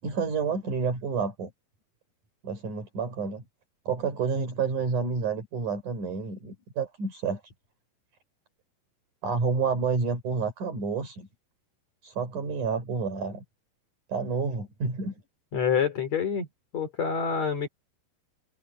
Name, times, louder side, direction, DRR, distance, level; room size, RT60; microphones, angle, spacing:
voice 1, 0.0-1.5 2.4-3.4 3.9-7.4 9.2-11.3 12.0-13.4 14.1-15.1, right 5 dB, 50° right, 6.3 m, -29 dB
voice 2, 15.5-16.5 16.7-17.7, left 7 dB, 40° left, 5.0 m, -27 dB
omnidirectional pair, 4.8 m